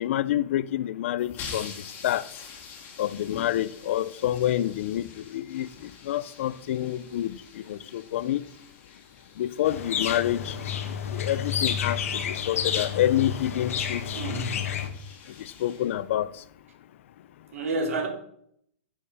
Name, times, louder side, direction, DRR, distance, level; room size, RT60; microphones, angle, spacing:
voice 1, 0.0-1.7 2.0-2.2 3.0-5.7 6.0-8.4 9.4-10.6 11.1-14.0 14.3-14.7 15.4-16.3, left 12 dB, 65° left, 0.6 m, -28 dB
sound 1, 1.2-16.6, left 5 dB, 25° left, 2.2 m, -47 dB
sound 2, 9.6-14.9, left 8 dB, 85° left, 1.6 m, -30 dB
voice 2, 14.1-14.6 17.5-18.1, right 2 dB, 90° right, 3.0 m, -29 dB
10.0 x 7.3 x 5.5 m
supercardioid pair, 160°, 7 cm